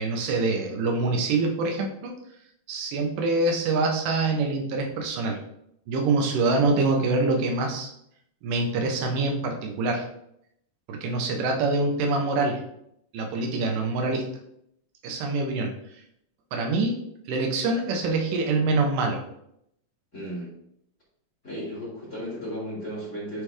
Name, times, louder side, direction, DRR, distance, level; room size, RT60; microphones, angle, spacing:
voice 1, 0.0-2.1 2.7-5.4 5.9-7.9 8.4-10.0 10.9-12.6 13.1-14.2 15.0-15.7 16.5-17.0 17.3-19.2, right 3 dB, 70° right, 2 dB, 2.5 m, -25 dB
voice 2, 20.1-20.5 21.4-23.4, equal, 25° left, -7 dB, 1.9 m, -34 dB
9.7 x 3.4 x 3.3 m, 0.75 s
omnidirectional pair, 4.2 m